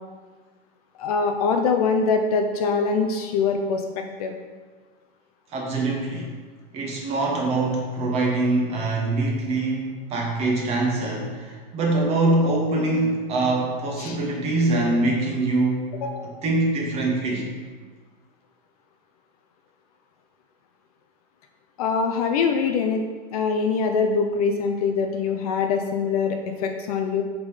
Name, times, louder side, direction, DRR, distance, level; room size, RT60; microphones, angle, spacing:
voice 1, 1.0-4.3 14.0-14.2 16.0-16.3 21.8-23.0 23.3-27.2, left 5 dB, 40° left, 4 dB, 0.5 m, -23 dB
voice 2, 5.5-6.3 6.7-15.9 16.4-17.5, right 2 dB, 20° right, 0 dB, 1.0 m, -24 dB
7.2 x 3.7 x 4.9 m, 1.4 s
supercardioid pair, 165°, 29 cm